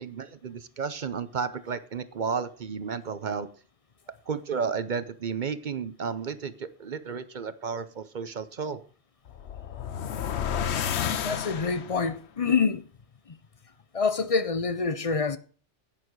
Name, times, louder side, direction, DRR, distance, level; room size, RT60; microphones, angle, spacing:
voice 1, 0.0-3.5 4.3-8.8, right 6 dB, 50° right, 0.8 m, -32 dB
sound 1, 9.3-12.1, left 8 dB, 80° left, 1.0 m, -31 dB
voice 2, 11.2-12.8 13.9-15.4, left 5 dB, 40° left, 0.6 m, -26 dB
11.0 x 9.0 x 4.6 m
omnidirectional pair, 1.1 m